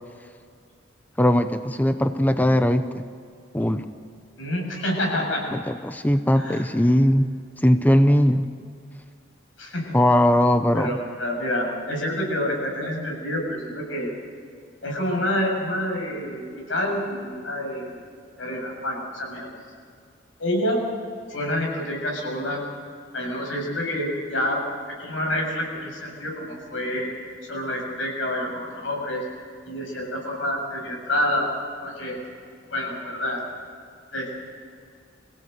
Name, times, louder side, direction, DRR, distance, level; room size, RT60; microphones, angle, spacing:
voice 1, 1.2-3.0 3.5-3.9 5.5-7.3 7.6-8.5 9.9-10.9, left 1 dB, 10° left, 9 dB, 0.7 m, -19 dB
voice 2, 4.4-5.4 6.4-6.7 9.6-9.8 10.7-14.1 14.8-18.0 18.4-19.5 20.4-20.8 21.3-22.6 23.1-24.6 25.0-27.1 27.5-29.2 29.6-31.4 31.8-32.2 32.7-33.4 34.1-34.3, left 1 dB, 85° left, -1 dB, 7.5 m, -27 dB
25.5 x 16.5 x 8.1 m, 2.2 s
head